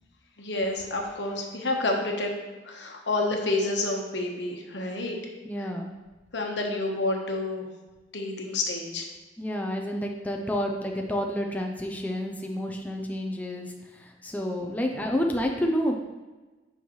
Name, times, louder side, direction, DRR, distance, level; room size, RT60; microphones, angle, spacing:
voice 1, 0.4-2.3 2.6-5.2 6.3-7.7 8.1-9.1 14.7-15.0, left 2 dB, 75° left, 1 dB, 1.1 m, -29 dB
voice 2, 5.4-5.9 9.4-15.9, equal, 10° left, 1 dB, 0.5 m, -29 dB
8.5 x 5.5 x 3.1 m, 1.2 s
head